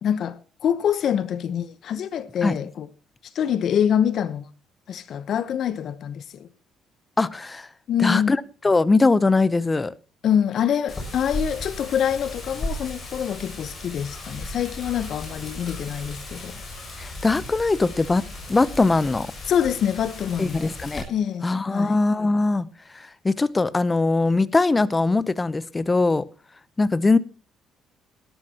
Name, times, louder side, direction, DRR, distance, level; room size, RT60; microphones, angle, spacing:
voice 1, 0.0-2.9 3.3-4.5 4.9-6.5 7.9-8.4 10.2-16.6 19.5-20.7 21.1-22.0, left 9 dB, 60° left, 0.9 m, -25 dB
voice 2, 7.2-7.7 8.0-8.4 8.6-9.9 17.0-18.2 18.5-19.3 20.4-21.0 21.4-22.7 22.9-26.2 26.8-27.2, left 3 dB, 20° left, 0.7 m, -21 dB
Wind, 10.9-21.0, left 1 dB, 35° left, 7.3 m, -36 dB
18.0 x 12.5 x 2.9 m
cardioid pair, 100°, 0 cm